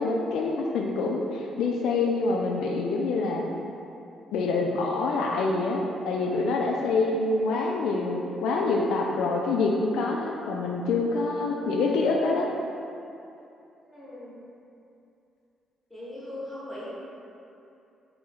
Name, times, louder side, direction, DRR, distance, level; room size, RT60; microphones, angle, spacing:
voice 1, 0.0-3.4 4.3-12.5, left 3 dB, 80° left, 0 dB, 0.3 m, -26 dB
voice 2, 7.2-7.6 13.8-14.4 15.9-16.9, left 1 dB, 5° left, -9 dB, 1.3 m, -40 dB
2.7 x 2.7 x 4.2 m, 2.7 s
cardioid pair, 90°, 0 cm